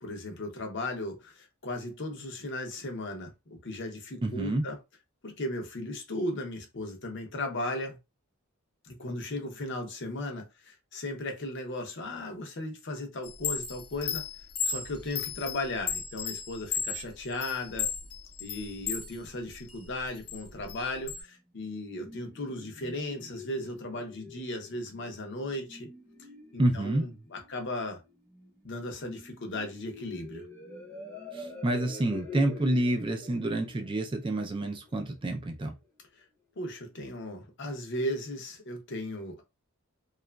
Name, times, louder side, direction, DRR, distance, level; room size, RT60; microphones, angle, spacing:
voice 1, 0.0-4.8 5.2-8.0 8.8-14.2 14.6-17.9 18.4-25.9 26.5-28.0 28.6-30.4 36.6-39.4, left 1 dB, 50° left, 0.6 m, -36 dB
voice 2, 4.2-4.6 26.6-27.1 31.3-35.7, right 1 dB, 20° right, 0.3 m, -28 dB
Chime, 13.2-19.1 19.5-21.2, left 7 dB, 80° left, 0.8 m, -34 dB
sound 1, 21.9-35.5, left 3 dB, 10° left, 0.7 m, -47 dB
2.8 x 2.3 x 2.2 m
head